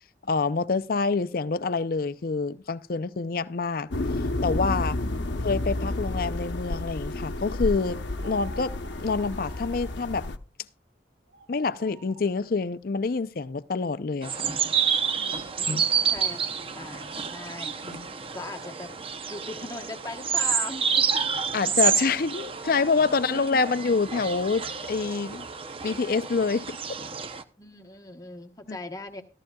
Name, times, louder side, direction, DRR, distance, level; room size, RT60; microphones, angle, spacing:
voice 1, 0.2-3.9 4.4-5.0 5.4-10.3 11.5-14.4 15.7-15.8 17.8-18.1 21.5-25.4 25.8-27.0 28.7-28.8, left 4 dB, 55° left, 0.5 m, -27 dB
sound 1, 3.9-10.4, left 2 dB, 80° left, 0.8 m, -30 dB
voice 2, 4.9-5.4 15.1-18.0 18.3-18.9 19.3-21.2 23.0-23.8 27.6-29.2, left 2 dB, 20° left, 1.1 m, -40 dB
sound 2, 8.1-10.0 11.3-12.3, right 1 dB, 70° right, 2.7 m, -49 dB
sound 3, 14.2-27.4, right 7 dB, 30° right, 0.7 m, -29 dB
14.5 x 14.0 x 2.3 m
head